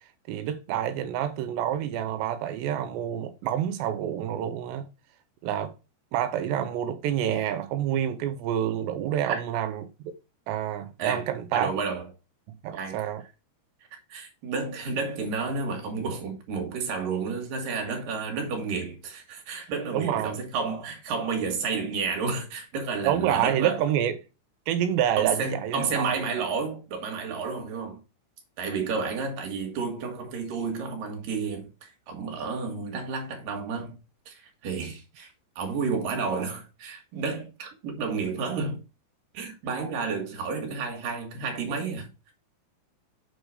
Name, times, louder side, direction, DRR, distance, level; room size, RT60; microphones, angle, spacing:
voice 1, 0.3-4.9 5.4-5.7 6.1-9.9 10.5-11.7 12.6-13.2 19.9-20.4 23.0-24.2 24.7-26.2, right 10 dB, 85° right, 3.1 m, -28 dB
voice 2, 11.5-12.0 12.7-13.0 14.1-23.8 25.2-28.0 28.6-34.0 34.3-35.3 35.6-38.8 39.3-42.1, right 4 dB, 60° right, 3.1 m, -31 dB
7.8 x 4.7 x 4.8 m
omnidirectional pair, 4.8 m